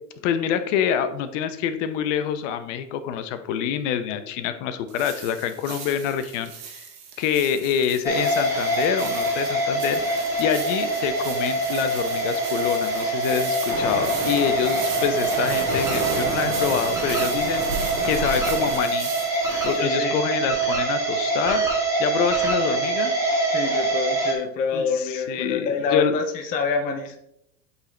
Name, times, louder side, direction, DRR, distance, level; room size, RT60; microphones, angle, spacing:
voice 1, 0.2-6.5 7.2-19.3 19.6-21.6 22.0-23.1 24.7-24.8 25.3-26.1, left 8 dB, 50° left, 10 dB, 0.8 m, -26 dB
sound 1, 4.9-19.8, right 7 dB, 55° right, 1.6 m, -38 dB
sound 2, 8.0-24.3, right 2 dB, 5° right, 1.5 m, -24 dB
sound 3, 13.7-18.8, right 3 dB, 30° right, 1.5 m, -31 dB
voice 2, 19.7-20.3 23.4-27.2, left 5 dB, 20° left, 4 dB, 0.5 m, -27 dB
8.1 x 3.9 x 3.3 m, 0.78 s
hypercardioid pair, 120°, 48 cm